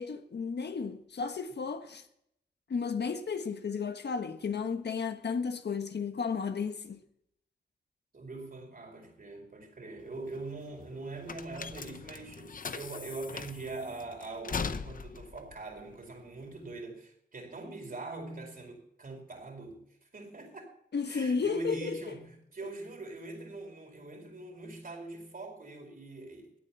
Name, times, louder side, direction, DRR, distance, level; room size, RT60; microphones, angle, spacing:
voice 1, 0.0-2.0 2.7-7.0 20.9-22.0, left 5 dB, 70° left, 1.4 m, -33 dB
voice 2, 8.1-20.7 21.0-26.6, right 2 dB, 55° right, 4.6 m, -42 dB
sound 1, 10.0-16.8, left 5 dB, 50° left, 0.8 m, -40 dB
17.0 x 9.0 x 5.6 m
wide cardioid pair, 75°, 18 cm